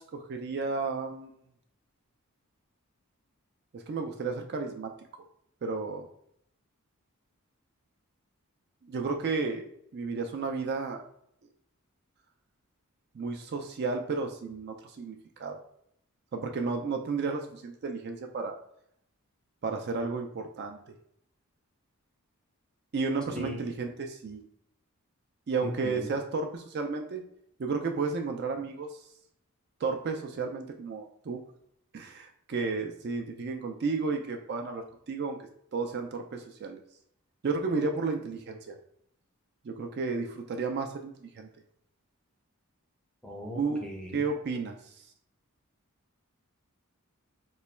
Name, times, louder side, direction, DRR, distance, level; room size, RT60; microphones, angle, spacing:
voice 1, 0.0-1.3 3.7-4.9 5.6-6.1 8.8-9.6 9.9-11.0 13.1-15.6 16.3-18.6 19.6-20.8 22.9-24.4 25.5-27.2 27.6-29.0 29.8-31.4 31.9-35.4 35.7-36.8 37.4-38.8 39.6-41.5 43.5-43.8 44.1-44.8, right 4 dB, 45° right, 3 dB, 0.4 m, -32 dB
voice 2, 23.3-23.7 25.6-26.1 43.2-44.2, equal, 5° left, 0 dB, 0.5 m, -38 dB
3.0 x 2.2 x 4.2 m, 0.69 s
head